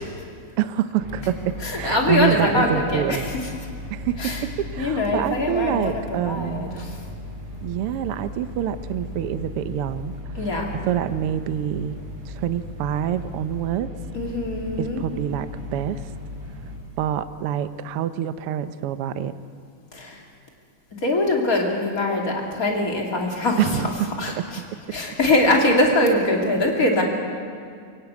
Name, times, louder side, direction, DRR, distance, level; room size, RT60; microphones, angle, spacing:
voice 1, 0.6-3.3 3.9-6.9 7.6-10.2 10.9-12.0 12.3-13.9 14.8-16.1 17.0-19.3 23.6-24.1 24.4-25.0, right 11 dB, 75° right, 11 dB, 1.3 m, -26 dB
sound 1, 1.0-16.8, left 1 dB, 50° right, 4.5 m, -36 dB
voice 2, 1.6-3.5 4.2-4.4 4.8-7.0 10.3-10.6 14.1-15.0 19.9-20.2 20.9-23.8 24.2-24.6 24.9-27.0, left 2 dB, 30° left, 0 dB, 3.0 m, -23 dB
23.5 x 17.5 x 8.3 m, 2.2 s
omnidirectional pair, 3.4 m